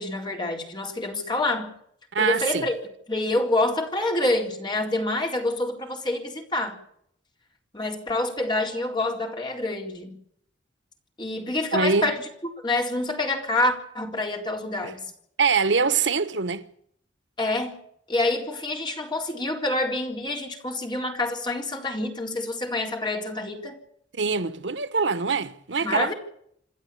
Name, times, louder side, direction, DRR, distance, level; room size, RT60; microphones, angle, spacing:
voice 1, 0.0-1.7 2.2-2.8 3.1-6.8 7.7-10.2 11.2-12.2 12.6-15.0 17.4-17.8 18.1-23.8 25.8-26.1, left 2 dB, 25° left, 3.9 m, -27 dB
voice 2, 2.1-2.7 11.7-12.1 14.8-14.9 15.4-16.6 24.1-26.1, right 5 dB, 80° right, 1.1 m, -24 dB
27.5 x 11.5 x 8.5 m
head